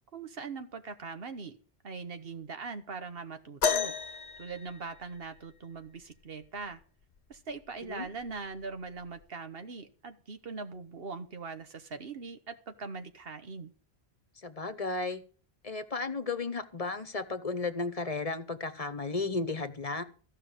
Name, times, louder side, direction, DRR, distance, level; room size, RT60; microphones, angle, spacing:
voice 1, 0.1-1.6 1.8-3.9 4.4-6.8 7.3-13.7, right 4 dB, 65° right, 9 dB, 1.3 m, -41 dB
sound 1, 3.6-5.5 7.2-7.3 8.1-8.3 9.2-9.3, left 6 dB, 80° left, 1.1 m, -32 dB
voice 2, 14.4-15.2 15.6-20.0, left 3 dB, 35° left, 10 dB, 1.0 m, -34 dB
14.5 x 5.7 x 8.1 m, 0.41 s
omnidirectional pair, 1.1 m